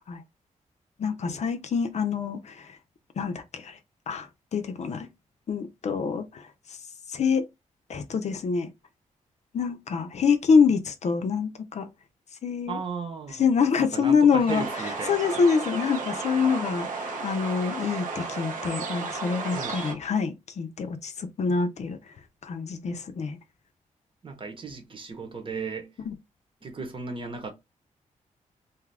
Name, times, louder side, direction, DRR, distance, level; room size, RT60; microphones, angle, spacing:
voice 1, 1.0-2.7 3.2-3.8 4.1-5.1 5.5-6.5 7.1-7.4 7.9-8.7 9.5-11.9 12.4-12.8 13.4-14.6 15.1-22.0 22.4-23.4, left 5 dB, 55° left, 0.6 m, -25 dB
voice 2, 12.7-13.5 13.8-15.5 19.5-19.9 24.2-26.0 26.6-27.5, right 4 dB, 40° right, 1.0 m, -36 dB
sound 1, 14.5-19.9, right 4 dB, 75° right, 0.9 m, -33 dB
2.7 x 2.4 x 3.3 m
cardioid pair, 85°, 13 cm